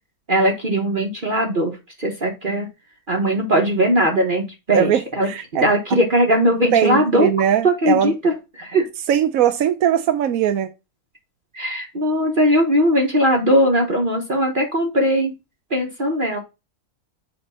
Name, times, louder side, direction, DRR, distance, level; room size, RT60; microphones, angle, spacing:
voice 1, 0.3-2.7 3.1-5.3 5.6-7.3 7.6-8.8 11.5-15.3 15.7-16.4, equal, 35° right, 1.3 m, -19 dB
voice 2, 4.7-5.6 6.7-8.1 9.1-10.7, right 9 dB, 75° right, 1.0 m, -20 dB
7.8 x 2.9 x 5.4 m
omnidirectional pair, 1.5 m